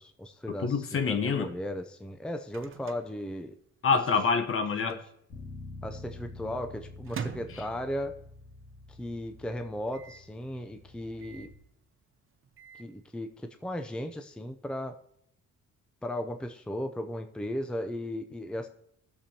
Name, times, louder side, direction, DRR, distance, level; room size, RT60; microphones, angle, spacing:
voice 1, 0.0-3.5 4.9-5.0 5.8-8.2 9.0-11.5 12.8-15.0 16.0-18.7, left 1 dB, 5° left, 0.6 m, -36 dB
voice 2, 0.6-1.5 3.8-5.0, left 5 dB, 45° left, 1.0 m, -26 dB
Microwave oven, 1.9-4.1 4.4-4.5 4.7-5.2 5.7-8.4 8.9-9.0 9.1-9.2 9.9-10.3 11.2-11.6 12.3-12.9, right 7 dB, 45° right, 0.9 m, -44 dB
Bass guitar, 5.3-11.5, left 2 dB, 65° left, 2.3 m, -47 dB
16.5 x 6.9 x 2.9 m
cardioid pair, 90°, 30 cm